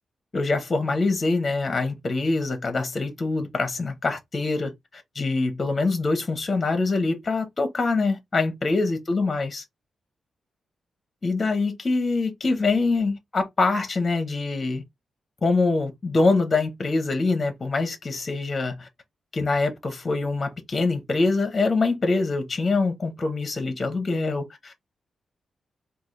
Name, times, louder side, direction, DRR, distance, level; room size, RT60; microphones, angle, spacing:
voice 1, 0.3-9.6 11.2-14.8 15.4-18.9 19.3-24.8, left 3 dB, 25° left, 0.7 m, -24 dB
3.6 x 2.3 x 3.2 m
wide cardioid pair, 180°, 0 cm